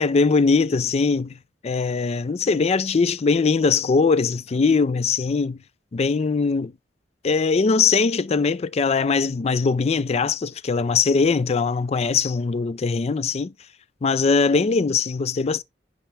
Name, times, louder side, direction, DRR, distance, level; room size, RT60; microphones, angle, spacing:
voice 1, 0.0-1.3 1.6-5.6 5.9-6.7 7.2-13.5 14.0-15.6, left 4 dB, 35° left, 0.4 m, -21 dB
10.0 x 5.2 x 3.3 m
head